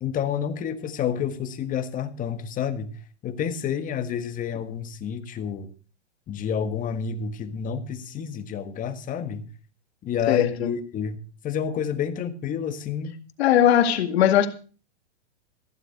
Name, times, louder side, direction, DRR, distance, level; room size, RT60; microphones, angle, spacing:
voice 1, 0.0-2.9 3.2-5.7 6.3-9.4 10.0-11.2 11.4-13.1, left 8 dB, 25° left, 1.6 m, -29 dB
voice 2, 10.3-10.7 13.4-14.5, left 10 dB, 65° left, 2.1 m, -19 dB
15.0 x 7.6 x 6.6 m
hypercardioid pair, 130°, 34 cm